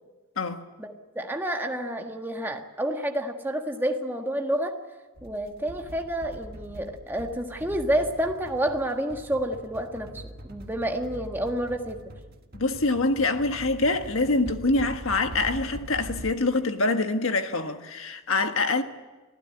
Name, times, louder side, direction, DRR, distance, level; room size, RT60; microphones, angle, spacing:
voice 1, 0.8-4.7 5.2-12.0, right 1 dB, 10° right, 1.5 m, -29 dB
sound 1, 5.2-16.3, right 1 dB, 45° right, 1.6 m, -43 dB
voice 2, 12.5-18.8, left 3 dB, 60° left, 1.6 m, -25 dB
25.5 x 16.0 x 9.9 m
head